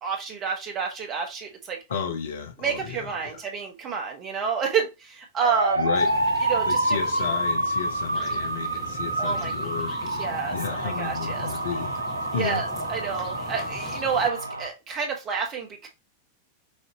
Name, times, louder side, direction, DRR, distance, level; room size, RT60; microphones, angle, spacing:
voice 1, 0.0-1.8 2.6-5.8 6.5-7.0 9.2-9.5 10.1-11.5 12.3-15.9, right 6 dB, 30° right, 1.5 m, -29 dB
voice 2, 1.9-3.4 5.8-6.1 6.6-10.2 10.5-12.0 12.3-12.6, left 7 dB, 65° left, 0.9 m, -33 dB
sound 1, 5.4-14.7, right 1 dB, 85° right, 0.5 m, -28 dB
sound 2, 5.9-14.3, left 5 dB, 35° left, 1.0 m, -42 dB
6.3 x 2.8 x 2.9 m
figure-of-eight pair, 90°, 0 cm